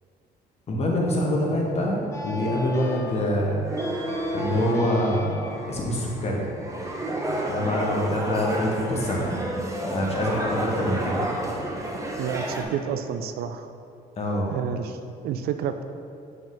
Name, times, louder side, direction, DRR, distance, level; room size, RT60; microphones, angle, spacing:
voice 1, 0.7-3.6 4.3-6.4 7.5-9.4 9.9-11.2 14.2-14.6, left 1 dB, 40° left, -2 dB, 1.4 m, -25 dB
sound 1, 2.1-7.2, left 2 dB, 15° left, 0.9 m, -40 dB
sound 2, 3.6-4.8 5.4-12.6, right 1 dB, 20° right, 0.9 m, -31 dB
voice 2, 12.2-13.7 14.5-15.8, right 8 dB, 65° right, 8 dB, 0.4 m, -30 dB
5.8 x 5.2 x 3.8 m, 2.4 s
cardioid pair, 110°, 17 cm